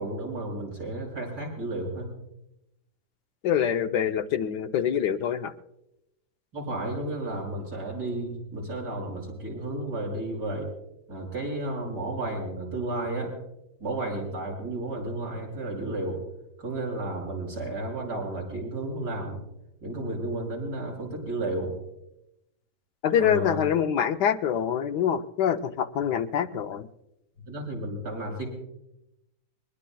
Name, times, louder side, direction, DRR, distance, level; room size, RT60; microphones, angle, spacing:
voice 1, 0.0-2.1 6.5-10.7 11.1-13.3 13.8-16.2 16.6-19.4 19.8-21.7 23.2-23.7 27.4-28.4, right 2 dB, 80° right, -2 dB, 6.6 m, -32 dB
voice 2, 3.4-5.5 23.0-26.9, left 8 dB, 80° left, 8 dB, 1.3 m, -25 dB
22.0 x 21.0 x 2.3 m, 0.87 s
omnidirectional pair, 1.8 m